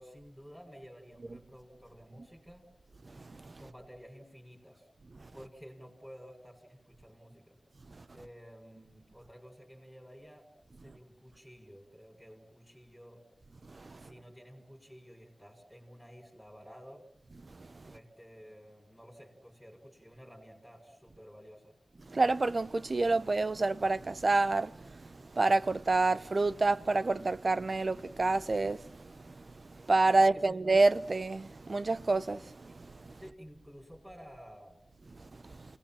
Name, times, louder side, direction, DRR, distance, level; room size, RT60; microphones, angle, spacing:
voice 1, 0.0-2.7 3.6-4.9 5.3-7.6 8.1-10.5 10.8-13.2 14.0-17.1 17.8-21.7 30.2-30.6 33.2-34.8, equal, ahead, 6.9 m, -52 dB
voice 2, 3.1-3.5 13.7-14.0 17.6-17.9 22.1-29.4 29.7-32.9 35.4-35.6, right 3 dB, 55° right, 1.0 m, -28 dB
28.0 x 20.0 x 7.6 m
cardioid pair, 45°, 0 cm